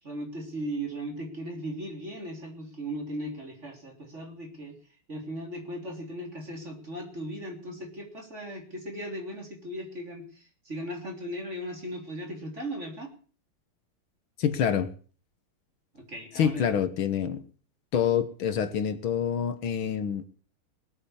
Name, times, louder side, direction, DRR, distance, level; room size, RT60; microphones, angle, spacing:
voice 1, 0.0-4.8 5.1-13.1 15.9-16.6, right 1 dB, 30° right, 3.8 m, -37 dB
voice 2, 14.4-14.9 16.4-17.4 17.9-20.3, left 8 dB, 75° left, 2.0 m, -26 dB
19.5 x 8.6 x 7.2 m
omnidirectional pair, 2.3 m